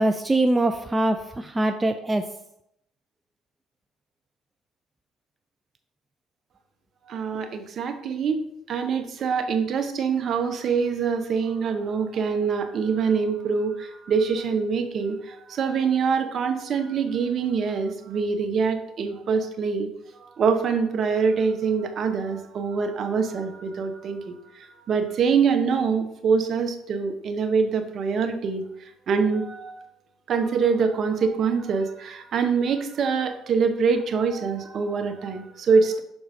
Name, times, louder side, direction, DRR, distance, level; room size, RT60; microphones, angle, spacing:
voice 1, 0.0-2.2, right 1 dB, 15° right, 7 dB, 0.4 m, -23 dB
voice 2, 7.1-8.4 8.7-19.9 20.2-28.6 29.1-29.8 30.3-36.0, right 5 dB, 50° right, 7 dB, 0.9 m, -24 dB
6.2 x 3.9 x 5.0 m, 0.78 s
supercardioid pair, 85°, 0 cm